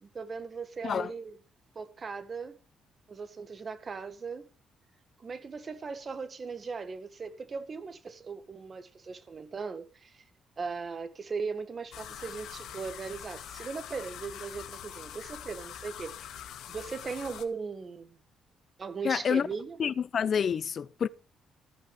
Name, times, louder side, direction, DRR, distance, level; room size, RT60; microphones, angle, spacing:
voice 1, 0.0-1.3 1.7-2.6 3.1-4.4 5.2-10.2 10.6-16.4 16.7-18.2 18.8-19.9, right 5 dB, 40° right, 1.6 m, -38 dB
sound 1, 11.9-17.4, left 10 dB, 80° left, 1.3 m, -44 dB
voice 2, 19.0-19.5 19.8-21.1, left 7 dB, 55° left, 0.5 m, -28 dB
13.5 x 6.0 x 6.7 m
cardioid pair, 90°, 0 cm